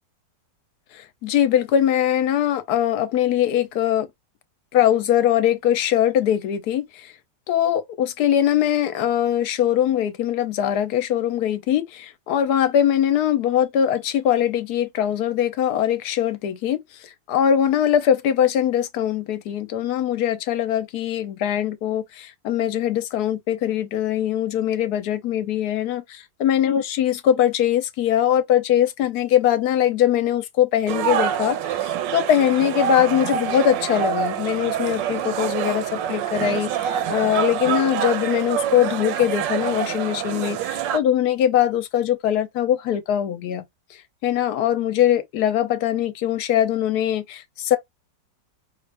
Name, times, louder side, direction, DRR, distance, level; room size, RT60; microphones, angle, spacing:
voice 1, 0.9-4.1 4.7-7.1 7.5-43.6 44.2-47.8, left 10 dB, 65° left, 1.1 m, -21 dB
sound 1, 30.9-41.0, right 10 dB, 80° right, 1.3 m, -26 dB
5.4 x 2.4 x 3.3 m
omnidirectional pair, 2.0 m